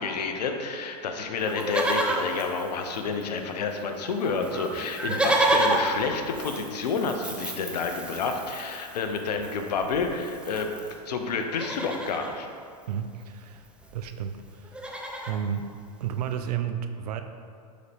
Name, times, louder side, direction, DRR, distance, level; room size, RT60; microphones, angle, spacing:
voice 1, 0.0-10.7 11.1-12.5, left 4 dB, 80° left, 5 dB, 0.7 m, -29 dB
Livestock farm animals working animals, 1.4-3.4 3.7-3.8 4.0-11.0 11.4-12.3 13.5-13.6 13.8-14.1 14.4-15.4 16.0-16.1, right 1 dB, 5° right, 0.5 m, -30 dB
voice 2, 12.9-13.7 13.9-14.7 15.3-15.7 16.0-17.2, right 8 dB, 70° right, 8 dB, 0.5 m, -32 dB
6.5 x 4.2 x 3.4 m, 2.2 s
hypercardioid pair, 115°, 21 cm